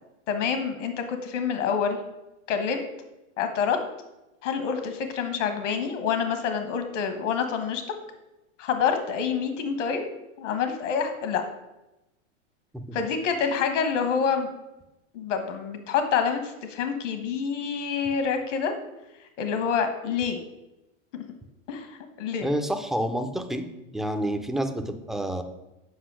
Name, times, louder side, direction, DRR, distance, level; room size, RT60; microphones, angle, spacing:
voice 1, 0.3-2.0 2.5-2.8 3.4-3.8 4.4-7.8 8.6-10.1 10.4-11.4 12.9-14.5 15.1-18.7 19.4-20.4 21.1-21.2 21.7-22.5, left 6 dB, 70° left, 7 dB, 1.4 m, -27 dB
voice 2, 22.4-23.6 23.9-25.4, right 1 dB, ahead, 6 dB, 0.3 m, -28 dB
8.1 x 5.5 x 6.2 m, 0.97 s
hypercardioid pair, 120°, 38 cm